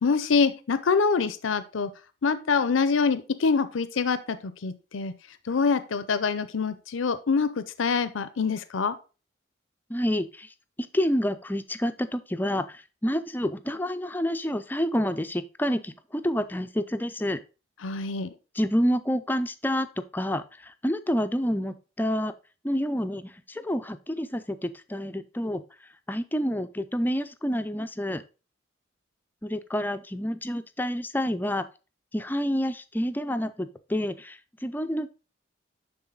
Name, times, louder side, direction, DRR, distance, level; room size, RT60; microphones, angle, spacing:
voice 1, 0.0-1.9 2.2-5.1 5.5-8.9 17.8-18.3, left 5 dB, 80° left, 13 dB, 0.6 m, -25 dB
voice 2, 9.9-17.4 18.5-22.3 22.6-25.6 26.1-28.2 29.4-31.6 32.1-35.1, equal, 10° left, 10 dB, 0.4 m, -28 dB
9.8 x 3.9 x 3.8 m, 0.32 s
head